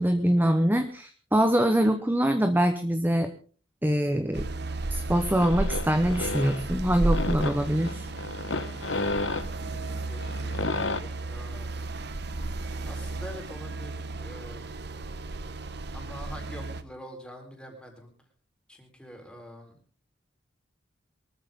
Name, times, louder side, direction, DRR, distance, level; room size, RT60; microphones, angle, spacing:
voice 1, 0.0-3.3 3.8-4.4 4.9-8.0, equal, 10° right, 7 dB, 0.9 m, -24 dB
sound 1, 4.3-16.8, right 2 dB, 55° right, 1.1 m, -33 dB
sound 2, 5.1-11.0, left 2 dB, 70° left, 1.1 m, -33 dB
voice 2, 9.9-11.8 12.8-14.7 15.9-18.1 18.7-19.8, equal, 5° left, 2 dB, 4.0 m, -45 dB
23.0 x 14.0 x 3.7 m, 0.40 s
head